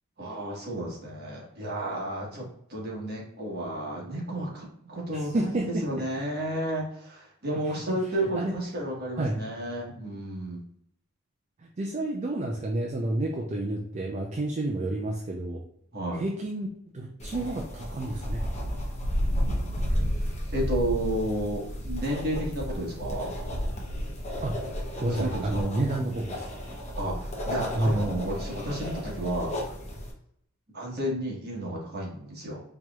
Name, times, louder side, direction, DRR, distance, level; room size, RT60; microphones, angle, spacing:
voice 1, 0.2-2.4 2.7-10.6 15.9-16.2 20.5-23.3 25.1-25.6 27.0-29.5 30.7-32.6, right 1 dB, 50° right, -3 dB, 1.3 m, -32 dB
voice 2, 5.1-5.8 8.3-8.5 9.2-9.4 11.6-15.6 16.1-16.7 16.9-18.4 24.4-24.7 25.0-26.5 27.7-28.3, right 1 dB, 35° right, 0 dB, 0.4 m, -30 dB
sound 1, 17.2-30.1, equal, 35° left, 0.8 m, -37 dB
sound 2, 18.2-25.6, equal, 90° right, 0.8 m, -31 dB
4.5 x 3.0 x 2.3 m, 0.72 s
head